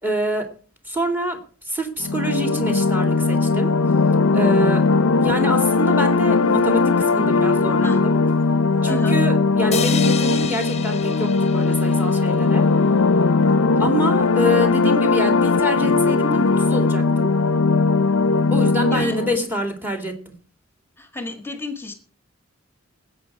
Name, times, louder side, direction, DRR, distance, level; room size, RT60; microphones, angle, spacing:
voice 1, 0.0-0.5 0.9-3.7 4.3-4.9 5.2-8.2 8.8-12.7 13.8-17.3 18.5-20.3, equal, 10° right, 5 dB, 2.4 m, -26 dB
sound 1, 2.0-19.4, left 4 dB, 85° left, 0.6 m, -19 dB
voice 2, 8.8-9.2 18.9-19.2 21.0-21.9, left 3 dB, 10° left, 6 dB, 1.7 m, -31 dB
sound 2, 9.7-13.0, left 8 dB, 30° left, 0.8 m, -31 dB
19.5 x 8.4 x 4.7 m, 0.39 s
head